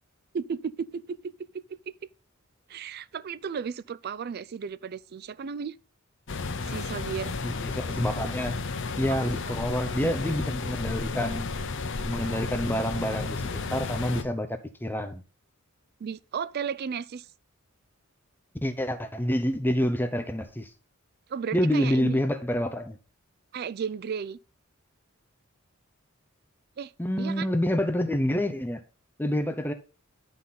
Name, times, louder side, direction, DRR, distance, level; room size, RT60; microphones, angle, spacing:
voice 1, 0.3-1.9 2.7-5.8 6.7-7.3 9.1-9.5 16.0-17.3 21.3-22.2 23.5-24.4 26.8-26.9 27.2-27.5, right 6 dB, 50° right, 0.4 m, -34 dB
sound 1, 6.3-14.2, left 3 dB, 60° left, 0.9 m, -32 dB
voice 2, 7.4-8.6 9.0-11.5 12.0-13.4 13.7-15.2 18.6-20.7 21.5-23.0 27.0-28.8 29.2-29.7, equal, 10° left, 0.6 m, -27 dB
10.5 x 4.0 x 5.6 m
head